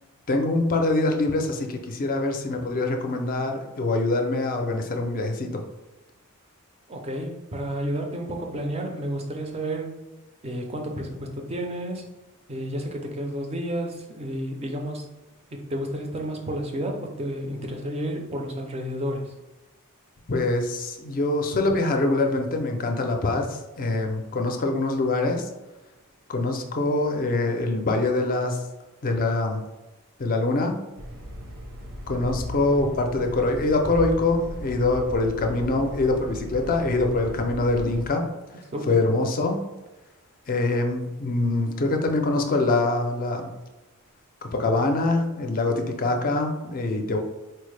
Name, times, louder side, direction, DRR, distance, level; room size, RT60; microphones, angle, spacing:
voice 1, 0.3-5.6 20.3-25.5 26.3-28.6 29.0-29.6 30.2-30.8 32.1-38.3 38.9-39.6 40.5-43.5 44.4-47.2, left 2 dB, 40° left, 4 dB, 0.4 m, -24 dB
voice 2, 6.9-10.0 10.4-12.1 12.5-15.1 15.5-19.3 38.7-39.0, right 1 dB, 25° right, 2 dB, 0.4 m, -31 dB
sound 1, 31.0-38.1, equal, 70° right, 0.8 m, -37 dB
4.3 x 2.0 x 3.2 m, 1.1 s
head